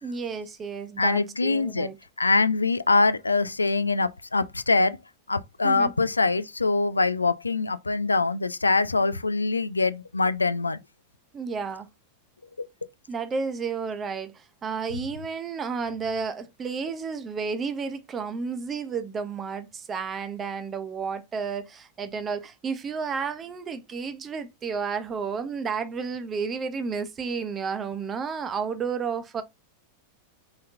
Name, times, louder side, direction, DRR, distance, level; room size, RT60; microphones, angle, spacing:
voice 1, 0.0-2.0 5.6-5.9 11.3-11.9 13.1-29.4, right 5 dB, 25° right, 0.9 m, -32 dB
voice 2, 1.0-1.9 2.2-5.0 5.3-10.8 12.6-12.7, left 3 dB, 80° left, 0.4 m, -23 dB
5.1 x 4.0 x 2.6 m
figure-of-eight pair, 90°, 0 cm